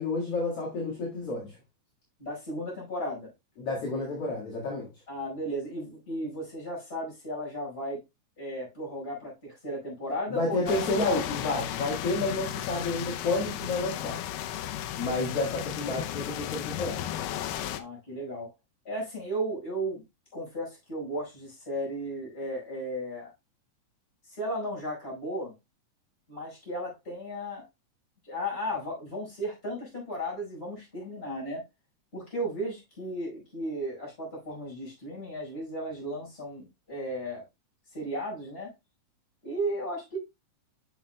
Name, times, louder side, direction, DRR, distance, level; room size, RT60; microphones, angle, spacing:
voice 1, 0.0-1.5 3.6-4.9 10.3-14.2 15.0-17.1, left 2 dB, 50° left, 2.6 m, -30 dB
voice 2, 2.2-3.3 5.1-8.0 8.4-11.3 17.8-18.5 18.8-20.0 20.3-23.3 24.2-25.5 26.3-27.6 28.2-31.6 32.1-37.4 37.9-38.7 39.4-40.2, equal, 15° left, 5.0 m, -35 dB
sound 1, 10.7-17.8, left 11 dB, 80° left, 2.1 m, -34 dB
9.7 x 6.4 x 2.2 m
omnidirectional pair, 3.9 m